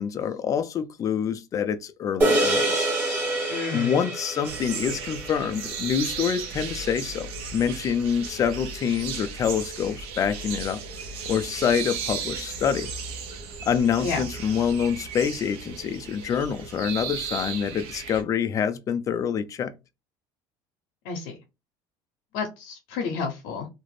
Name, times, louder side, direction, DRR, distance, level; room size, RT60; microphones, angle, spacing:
voice 1, 0.0-2.9 3.7-7.3 7.5-10.8 11.3-12.9 13.7-19.7, left 7 dB, 35° left, 0.3 m, -26 dB
sound 1, 2.2-6.8, right 1 dB, 20° right, 1.2 m, -27 dB
voice 2, 3.5-4.0 14.0-14.2 21.0-21.3 22.3-23.7, left 5 dB, 80° left, 0.6 m, -30 dB
sound 2, 4.4-18.2, right 5 dB, 65° right, 0.6 m, -35 dB
2.4 x 2.0 x 3.1 m
cardioid pair, 120°, 10 cm